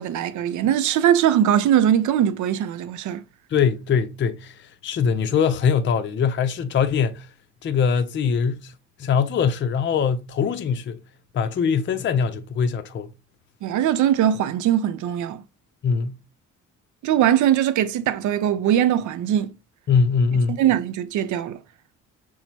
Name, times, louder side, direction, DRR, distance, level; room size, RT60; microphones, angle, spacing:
voice 1, 0.0-3.2 13.6-15.4 17.0-19.5 20.6-21.6, right 10 dB, 75° right, 0.6 m, -21 dB
voice 2, 3.5-7.3 7.6-8.7 9.0-11.0 11.3-13.1 15.8-16.2 19.9-20.6, left 6 dB, 40° left, 0.5 m, -22 dB
5.9 x 2.1 x 2.8 m
cardioid pair, 90°, 30 cm